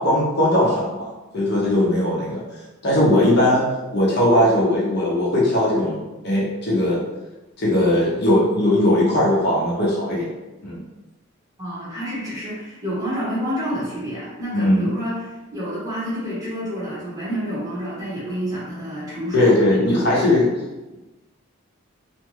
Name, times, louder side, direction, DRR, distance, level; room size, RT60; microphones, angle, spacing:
voice 1, 0.0-2.4 2.8-7.0 7.6-10.3 10.6-10.8 14.5-14.9 19.3-20.4, left 1 dB, 50° left, -6 dB, 0.6 m, -19 dB
voice 2, 11.6-20.6, equal, 15° right, -8 dB, 0.8 m, -29 dB
2.6 x 2.2 x 3.0 m, 1.1 s
head